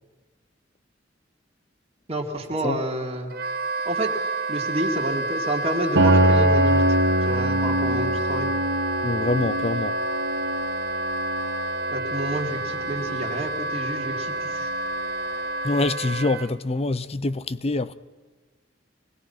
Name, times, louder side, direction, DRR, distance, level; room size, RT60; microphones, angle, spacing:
voice 1, 2.1-3.3 3.9-4.1 4.5-7.0 7.3-8.5 11.9-14.7, right 1 dB, 35° right, 2.6 m, -29 dB
Wind instrument woodwind instrument, 3.3-16.5, right 2 dB, 55° right, 1.2 m, -29 dB
Piano, 6.0-15.5, right 1 dB, 85° right, 1.8 m, -25 dB
voice 2, 9.0-10.0 15.6-17.9, left 2 dB, 35° left, 0.7 m, -25 dB
26.0 x 20.0 x 5.8 m
head